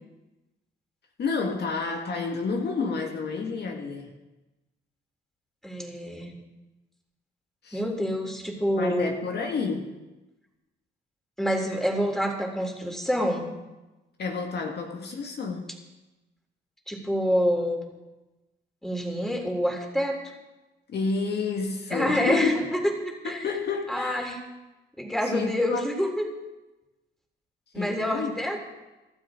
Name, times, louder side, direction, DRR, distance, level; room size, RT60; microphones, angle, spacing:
voice 1, 1.2-4.2 7.6-7.8 8.7-10.0 14.2-15.7 20.9-22.6 23.2-24.3 25.2-25.8 27.8-28.3, left 4 dB, 60° left, 2 dB, 1.9 m, -30 dB
voice 2, 5.6-6.4 7.7-9.1 11.4-13.5 16.9-17.8 18.8-20.2 21.9-23.4 23.9-24.4 25.0-26.3 27.7-28.6, equal, ahead, 1 dB, 3.7 m, -27 dB
25.5 x 12.5 x 3.8 m, 1.1 s
cardioid pair, 90°, 20 cm